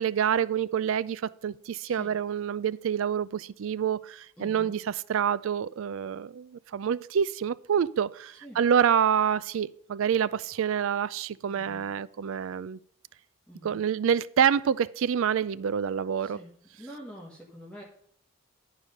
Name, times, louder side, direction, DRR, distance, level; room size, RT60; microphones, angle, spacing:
voice 1, 0.0-4.8 5.1-12.8 13.6-16.4, right 8 dB, 65° right, 0.3 m, -27 dB
voice 2, 1.8-2.2 4.4-4.8 8.4-8.6 11.5-11.9 13.5-13.9 16.2-17.8, equal, 5° left, 1.4 m, -46 dB
11.0 x 4.9 x 5.2 m
head